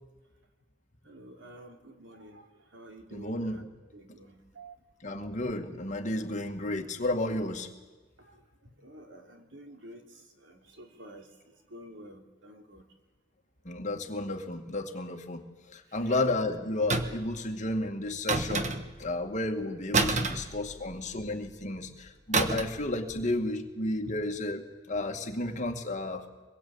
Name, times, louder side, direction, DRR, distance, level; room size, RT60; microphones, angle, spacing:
voice 1, 1.0-4.8 8.2-11.3 11.7-12.9 15.9-16.2 20.5-20.6 20.8-20.9 24.0-24.2, equal, 90° right, 4 dB, 3.1 m, -50 dB
voice 2, 3.1-3.7 5.0-7.7 13.7-15.4 15.7-18.7 19.0-26.2, left 2 dB, 40° left, 4 dB, 2.1 m, -32 dB
sound 1, 16.9-17.3 18.3-19.1 19.9-21.1 22.3-22.8 23.1-23.3, right 3 dB, 40° right, 1.4 m, -28 dB
25.0 x 21.5 x 8.8 m, 1.3 s
head